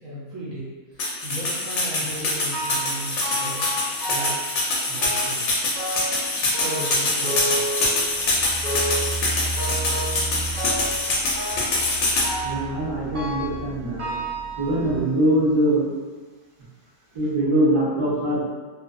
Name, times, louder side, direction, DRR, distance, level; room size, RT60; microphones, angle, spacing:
voice 1, 0.0-3.6 4.1-4.6 4.9-5.4 6.5-7.6, right 1 dB, 65° right, -7 dB, 0.8 m, -36 dB
sound 1, 1.0-12.3, left 2 dB, 65° left, 0.8 m, -24 dB
sound 2, 2.5-3.0 3.2-4.5 5.0-5.4 5.8-6.2 6.5-8.2 8.6-9.1 9.6-10.3 10.6-11.0 11.3-11.8 12.2-12.7 13.1-13.6 14.0-15.1 15.7-15.8 16.6-16.7 17.2-17.3, right 1 dB, 85° right, 0.4 m, -31 dB
sound 3, 7.8-15.0, right 1 dB, 10° right, 1.0 m, -35 dB
voice 2, 12.4-14.1 14.6-15.8 17.1-18.4, right 1 dB, 35° right, -9 dB, 0.5 m, -22 dB
2.4 x 2.3 x 2.4 m, 1.4 s
omnidirectional pair, 1.6 m